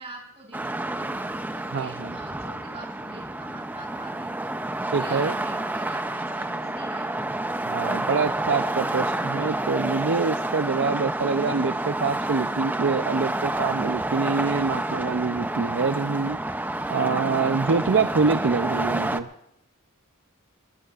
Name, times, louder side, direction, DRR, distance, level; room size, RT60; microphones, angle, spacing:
voice 1, 0.0-4.3 4.9-7.4, right 2 dB, 30° right, -1 dB, 5.6 m, -45 dB
sound 1, 0.5-19.2, right 1 dB, 10° right, 0.5 m, -29 dB
voice 2, 1.7-2.1 4.9-5.3 7.7-16.4 16.9-19.3, right 4 dB, 55° right, 9 dB, 0.5 m, -25 dB
21.5 x 20.5 x 2.4 m, 0.81 s
head